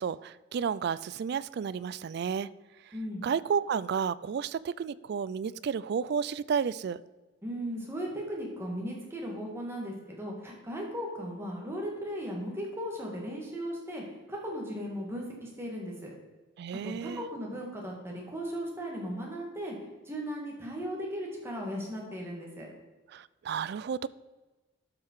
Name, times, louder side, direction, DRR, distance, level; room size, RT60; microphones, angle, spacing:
voice 1, 0.0-2.5 3.2-7.0 16.6-17.2 23.1-24.1, right 6 dB, 55° right, 19 dB, 0.3 m, -32 dB
voice 2, 2.9-3.2 7.4-16.1 16.8-19.7 20.1-22.7, equal, 15° right, -2 dB, 2.2 m, -37 dB
12.0 x 5.7 x 4.7 m, 1.2 s
head